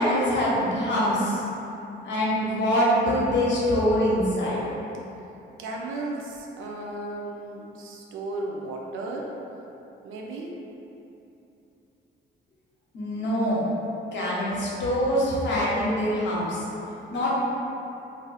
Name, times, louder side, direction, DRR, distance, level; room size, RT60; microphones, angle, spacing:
voice 1, 0.0-1.4 2.0-4.6 12.9-13.7 14.1-16.6 17.1-17.3, equal, 65° left, -6 dB, 0.9 m, -24 dB
voice 2, 5.6-9.3 10.0-10.6, right 2 dB, 85° right, -1 dB, 0.5 m, -34 dB
2.6 x 2.0 x 3.9 m, 2.9 s
cardioid pair, 90°, 20 cm